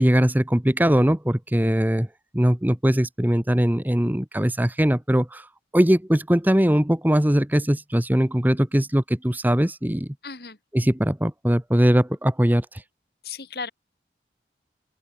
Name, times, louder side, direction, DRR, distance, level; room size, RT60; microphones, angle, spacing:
voice 1, 0.0-2.1 2.3-5.5 5.7-10.1 10.7-12.8, equal, 10° right, 0.9 m, -21 dB
voice 2, 10.2-10.6 13.2-13.7, left 5 dB, 60° left, 3.1 m, -34 dB
open air
head